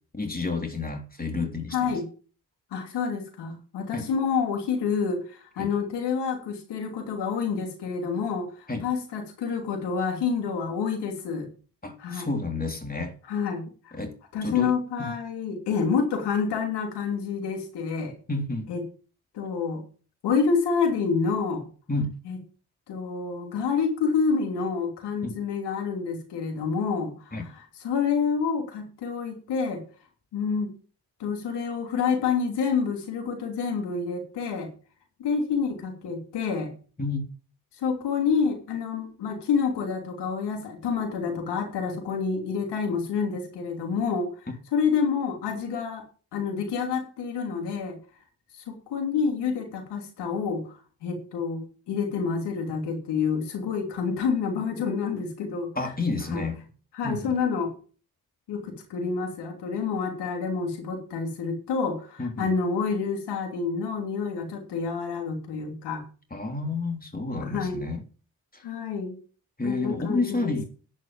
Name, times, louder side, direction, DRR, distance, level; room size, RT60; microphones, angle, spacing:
voice 1, 0.1-1.9 3.9-4.1 5.6-5.7 8.7-8.9 11.8-13.1 13.9-14.1 14.4-14.7 15.0-15.1 18.3-18.7 21.9-22.1 25.2-25.4 27.3-27.4 37.0-37.2 55.8-56.6 57.0-57.3 62.2-62.5 66.3-68.0 69.6-70.6, left 3 dB, 20° left, 4 dB, 3.4 m, -30 dB
voice 2, 1.7-2.1 2.7-11.5 12.0-12.3 13.3-14.0 14.3-18.1 18.7-18.8 19.3-19.8 20.2-21.6 22.2-22.4 22.9-27.5 27.8-29.8 30.3-30.7 31.2-34.7 35.2-36.7 37.8-44.3 44.7-46.0 46.3-48.0 48.5-50.7 51.0-55.7 56.3-56.4 56.9-57.7 58.5-66.0 67.4-67.8 68.6-69.1 69.6-70.6, left 5 dB, 85° left, 3 dB, 3.1 m, -28 dB
11.0 x 6.4 x 7.5 m, 0.39 s
supercardioid pair, 60°, 40 cm